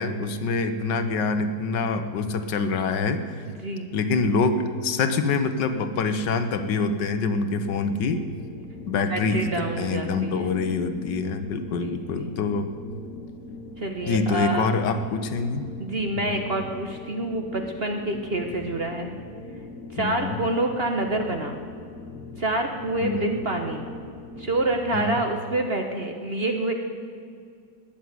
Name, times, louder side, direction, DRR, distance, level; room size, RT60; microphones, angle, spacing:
voice 1, 0.0-3.4 3.9-8.2 8.9-12.7 14.1-15.6 16.2-16.4 20.0-20.4 23.0-23.3 24.9-25.2, left 4 dB, 75° left, 9 dB, 1.6 m, -25 dB
sound 1, 7.4-24.8, left 2 dB, 60° left, 1.6 m, -41 dB
voice 2, 8.9-10.6 11.8-12.4 13.8-14.7 15.8-19.1 19.9-21.6 22.4-23.8 24.4-26.7, right 2 dB, 40° right, 4 dB, 1.1 m, -27 dB
19.0 x 7.1 x 9.5 m, 2.2 s
omnidirectional pair, 2.0 m